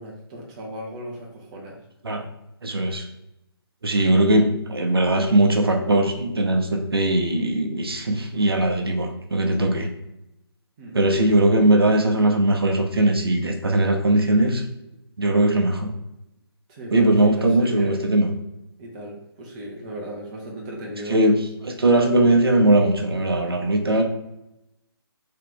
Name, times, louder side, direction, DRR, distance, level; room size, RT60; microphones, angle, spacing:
voice 1, 0.0-1.8 10.8-11.0 16.7-18.0 18.8-21.1, right 1 dB, 20° right, -2 dB, 0.6 m, -36 dB
voice 2, 2.6-3.1 3.8-9.9 10.9-14.6 15.2-15.9 16.9-18.3 21.1-24.0, right 1 dB, 65° right, 3 dB, 0.7 m, -20 dB
3.2 x 2.9 x 3.6 m, 0.87 s
figure-of-eight pair, 145°, 13 cm